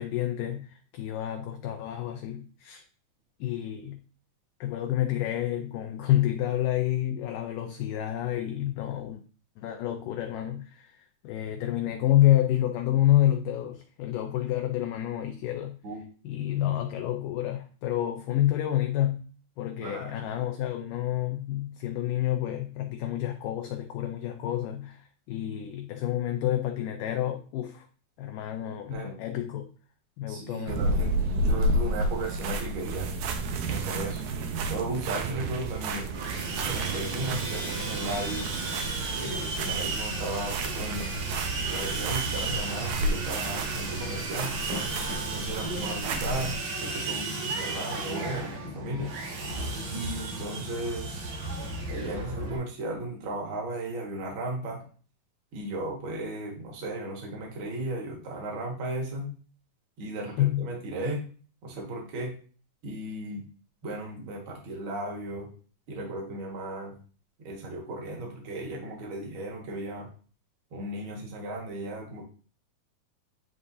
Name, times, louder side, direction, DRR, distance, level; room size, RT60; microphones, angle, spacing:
voice 1, 0.0-2.8 3.4-4.0 4.6-9.2 9.6-15.8 16.2-19.2 19.6-27.9 28.2-29.7 30.2-31.0 60.4-60.7, left 13 dB, 80° left, 5 dB, 1.9 m, -28 dB
voice 2, 19.8-20.3 28.9-29.1 30.3-31.1 31.4-33.1 33.7-34.2 34.7-36.1 36.5-38.5 39.1-41.1 41.6-44.5 45.3-49.1 49.9-51.3 51.9-54.8 55.5-59.3 60.0-61.2 61.6-62.3 62.8-63.4 63.8-65.5 65.9-66.9 67.4-70.1 70.7-72.2, right 1 dB, 50° right, -1 dB, 1.7 m, -35 dB
sound 1, 30.7-46.6, right 2 dB, 80° right, 1.7 m, -31 dB
Sawing, 36.1-52.6, right 3 dB, 65° right, 2.9 m, -34 dB
10.5 x 3.6 x 2.6 m, 0.40 s
omnidirectional pair, 4.3 m